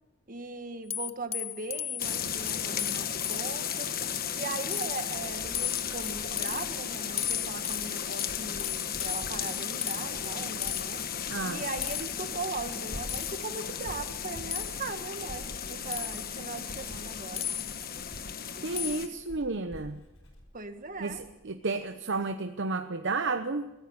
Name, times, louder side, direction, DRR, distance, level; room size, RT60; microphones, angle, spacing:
voice 1, 0.3-3.9 4.3-11.0 11.5-17.5 20.5-21.2, right 3 dB, 40° right, 7 dB, 1.9 m, -39 dB
sound 1, 0.9-3.7 4.1-4.4 4.7-5.1 5.5-6.6 7.2-10.1 10.6-10.9 11.8-12.2 13.1-13.4 14.5-14.7 15.9-16.4 17.4-17.9 18.8-19.1, left 10 dB, 30° left, 0.7 m, -36 dB
sound 2, 2.0-19.1, left 8 dB, 45° left, 1.3 m, -35 dB
Writing, 4.5-21.5 21.8-22.2, equal, 75° left, 6.2 m, -49 dB
voice 2, 11.3-11.6 18.6-20.0 21.0-21.1 21.4-23.7, right 3 dB, 60° right, 8 dB, 0.9 m, -31 dB
23.0 x 15.5 x 8.8 m, 1.0 s
head